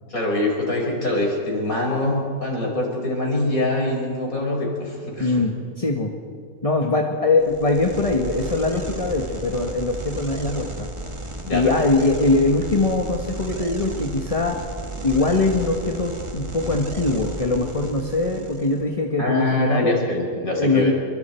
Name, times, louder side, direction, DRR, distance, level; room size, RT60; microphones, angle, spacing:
voice 1, 0.1-5.5 11.4-11.7 19.2-20.9, left 1 dB, 75° left, -1 dB, 5.9 m, -24 dB
voice 2, 5.2-6.1 6.6-10.9 11.5-14.6 15.0-19.9 20.6-20.9, left 3 dB, 25° left, 1 dB, 1.6 m, -22 dB
sound 1, 7.4-18.8, right 1 dB, 20° right, 1.6 m, -34 dB
29.5 x 24.0 x 4.6 m, 2.2 s
omnidirectional pair, 1.5 m